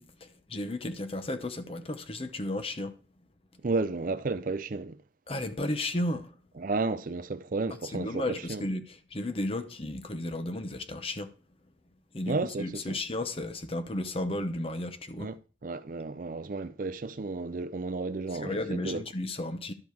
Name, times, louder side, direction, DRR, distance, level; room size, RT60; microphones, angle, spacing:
voice 1, 0.0-3.0 5.3-6.3 7.9-11.3 12.1-15.3 18.3-19.7, left 1 dB, 30° left, 0.8 m, -34 dB
voice 2, 3.6-5.0 6.6-8.6 12.3-13.0 15.2-15.4 15.6-19.0, right 3 dB, 45° right, 0.4 m, -32 dB
11.5 x 5.3 x 4.6 m
head